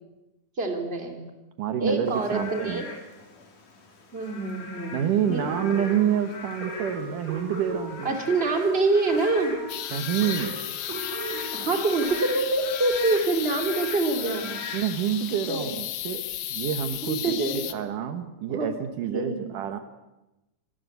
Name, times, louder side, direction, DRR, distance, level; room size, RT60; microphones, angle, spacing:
voice 1, 0.6-1.2 1.8-2.9 4.1-5.8 8.0-9.5 11.5-14.5 15.5-15.7 17.0-17.8 18.5-18.7 19.0-19.4, right 3 dB, 15° right, 4 dB, 3.2 m, -26 dB
voice 2, 1.6-2.8 4.9-8.2 9.9-10.6 14.7-16.2 16.5-19.8, right 9 dB, 70° right, 8 dB, 2.7 m, -28 dB
Frog / Rain, 2.1-15.5, left 4 dB, 65° left, 5.0 m, -41 dB
sound 1, 5.5-12.5, right 3 dB, 50° right, 4.7 m, -37 dB
sound 2, 9.7-17.7, left 12 dB, 90° left, 2.9 m, -34 dB
27.0 x 20.0 x 8.2 m, 1.0 s
omnidirectional pair, 3.9 m